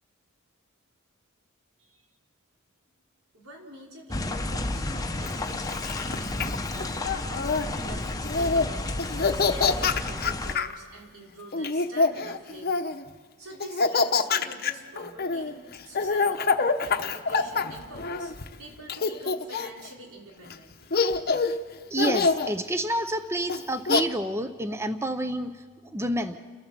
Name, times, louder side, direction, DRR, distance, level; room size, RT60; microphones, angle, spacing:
voice 1, 3.3-7.3 7.7-12.9 13.4-16.4 16.8-18.3 18.6-20.9, right 1 dB, 90° right, -1 dB, 4.2 m, -46 dB
sound 1, 4.1-10.6, left 2 dB, 15° left, 0.8 m, -32 dB
Laughter, 5.3-7.7 8.2-8.7 9.0-10.7 11.5-13.0 13.6-18.5 18.9-19.9 20.5-20.6 20.9-21.6 22.0-22.5 23.5-24.0, left 4 dB, 45° left, 0.9 m, -25 dB
voice 2, 21.9-25.5 25.9-26.4, right 1 dB, 10° right, 10 dB, 0.6 m, -28 dB
30.0 x 13.0 x 7.4 m, 1.5 s
head